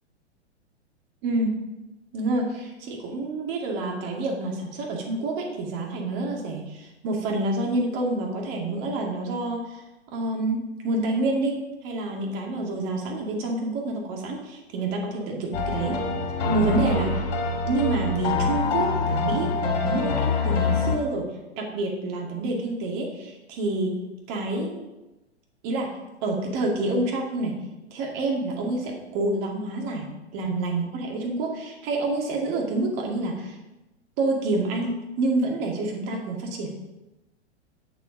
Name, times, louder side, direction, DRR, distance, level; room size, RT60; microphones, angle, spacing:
voice 1, 1.2-1.6 2.1-9.8 10.1-11.5 11.8-15.9 16.5-17.2 17.6-21.2 21.6-23.9 24.3-24.8 25.6-25.9 26.2-27.5 27.9-30.1 30.3-33.6 34.2-36.7, right 2 dB, 40° right, 0 dB, 2.4 m, -28 dB
sound 1, 15.5-21.0, left 4 dB, 55° left, 2.6 m, -25 dB
7.9 x 7.2 x 5.0 m, 1.0 s
figure-of-eight pair, 110°, 34 cm